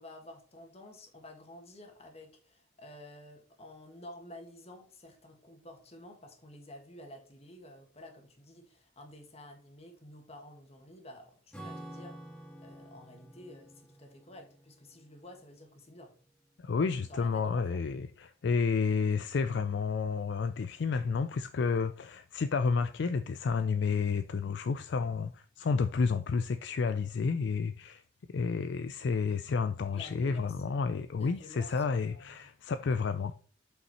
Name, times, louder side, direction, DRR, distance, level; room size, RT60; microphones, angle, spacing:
voice 1, 0.0-12.2 12.6-16.1 17.1-17.8 29.9-30.5 31.2-32.5, left 1 dB, 30° left, 1.8 m, -51 dB
Acoustic guitar / Strum, 11.5-16.3, right 1 dB, 5° left, 1.6 m, -50 dB
voice 2, 16.6-28.0 28.3-33.3, left 5 dB, 60° left, 0.4 m, -30 dB
7.9 x 5.6 x 4.2 m
head